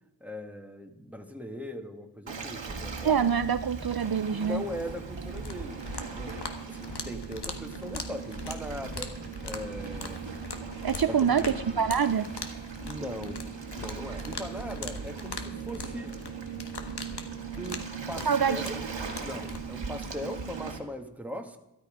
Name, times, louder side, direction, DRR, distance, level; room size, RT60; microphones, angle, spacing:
voice 1, 0.2-3.2 4.3-6.4 6.7-9.2 9.4-10.3 11.1-11.9 12.8-13.5 13.7-16.2 17.6-17.8 18.1-18.8 19.2-21.6, equal, 5° right, 4 dB, 1.7 m, -39 dB
Waves surf, 2.3-20.8, right 5 dB, 90° right, 1.9 m, -39 dB
voice 2, 3.0-4.6 10.8-12.3 18.3-18.6, right 7 dB, 55° right, 11 dB, 0.6 m, -25 dB
sound 1, 5.3-19.6, left 4 dB, 65° left, 1.6 m, -42 dB
13.5 x 13.0 x 5.1 m, 0.96 s
cardioid pair, 40°, 44 cm